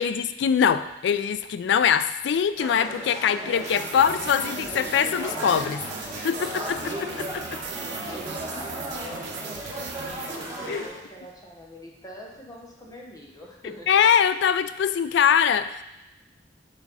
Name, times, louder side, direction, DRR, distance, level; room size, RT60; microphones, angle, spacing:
voice 1, 0.0-5.8 6.2-7.4 10.7-10.9 13.9-15.8, left 8 dB, 70° left, 12 dB, 0.3 m, -23 dB
sound 1, 2.6-10.9, right 1 dB, 15° right, 1.9 m, -36 dB
sound 2, 3.5-11.1, right 4 dB, 70° right, 0.9 m, -38 dB
voice 2, 8.0-13.9, equal, 20° left, -1 dB, 0.9 m, -45 dB
7.1 x 4.2 x 4.0 m, 0.93 s
head